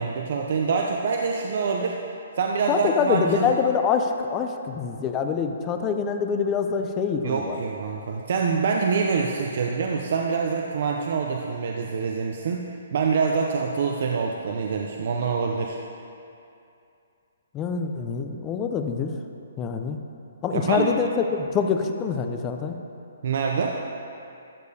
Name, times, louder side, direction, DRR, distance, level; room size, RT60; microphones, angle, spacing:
voice 1, 0.0-2.0 2.4-3.5 7.2-15.8 20.5-20.9 23.2-23.7, right 5 dB, 50° right, 1 dB, 0.5 m, -25 dB
voice 2, 2.7-7.6 17.5-19.1 19.6-20.0 20.4-21.1 21.4-22.8, left 6 dB, 15° left, 5 dB, 0.4 m, -25 dB
11.5 x 6.6 x 2.7 m, 2.6 s
hypercardioid pair, 170°, 0 cm